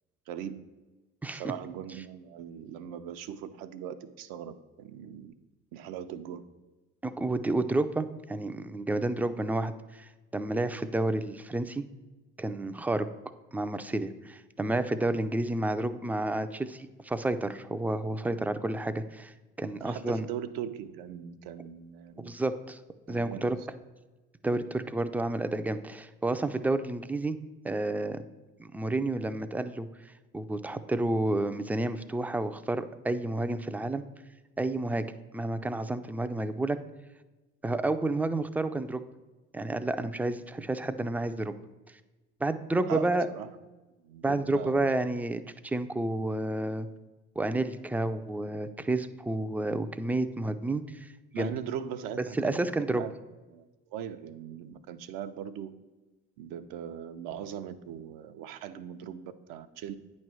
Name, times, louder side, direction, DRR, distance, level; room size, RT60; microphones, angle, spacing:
voice 1, 0.3-0.6 1.3-5.3 5.7-6.4 19.8-22.3 23.1-23.6 42.9-43.5 44.0-44.8 51.3-53.1 53.5-53.6 53.9-55.7 56.4-60.0, right 9 dB, 70° right, 10 dB, 0.6 m, -40 dB
voice 2, 7.0-11.8 12.4-13.1 13.5-20.3 22.2-22.8 23.1-23.6 24.4-27.4 27.6-28.2 28.6-29.9 30.3-34.0 34.6-35.1 35.3-36.8 37.6-39.0 39.5-41.6 42.4-43.3 44.2-46.9 47.4-51.5 52.4-53.0, right 2 dB, 5° right, 10 dB, 0.4 m, -30 dB
8.9 x 3.2 x 6.0 m, 1.2 s
hypercardioid pair, 65°, 35 cm